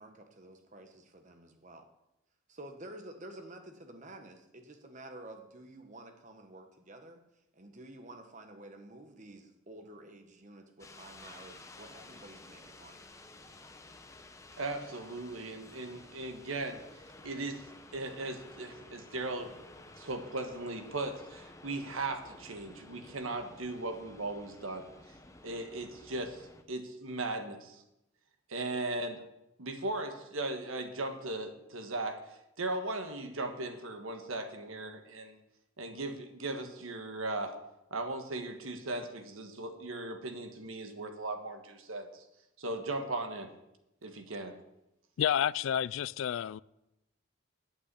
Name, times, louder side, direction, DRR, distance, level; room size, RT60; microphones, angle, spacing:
voice 1, 0.0-1.9 2.5-7.2 7.5-13.0, right 1 dB, 35° right, 1.2 m, -50 dB
sound 1, 10.8-26.6, left 2 dB, 15° left, 0.7 m, -53 dB
voice 2, 14.6-16.8 17.2-17.7 17.9-19.5 20.0-24.9 25.4-27.8 28.5-29.2 29.6-35.4 35.8-37.6 37.9-42.2 42.6-43.5 44.0-44.6, right 2 dB, 85° right, 1.5 m, -38 dB
voice 3, 45.2-46.6, left 9 dB, 75° left, 0.3 m, -30 dB
8.6 x 8.5 x 8.3 m
head